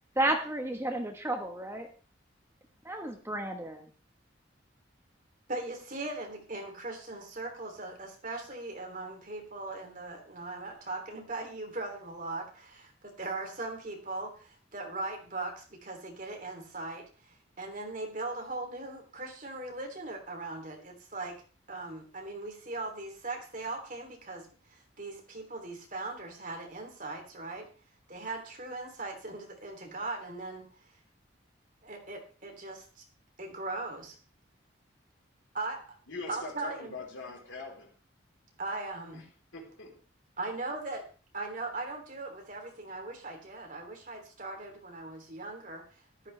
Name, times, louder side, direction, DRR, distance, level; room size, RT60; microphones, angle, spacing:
voice 1, 0.2-1.8 2.8-3.9, right 1 dB, 15° right, 4 dB, 1.2 m, -32 dB
voice 2, 5.5-21.3 21.7-27.7 28.1-30.7 31.8-33.0 33.4-34.1 35.5-35.8 36.3-36.9 38.6-39.2 40.4-41.0 41.3-46.3, right 2 dB, 40° right, 2 dB, 3.1 m, -39 dB
voice 3, 36.1-37.9 39.1-39.3 39.5-40.0, left 3 dB, 80° left, 0 dB, 3.8 m, -42 dB
14.0 x 12.5 x 3.3 m, 0.37 s
head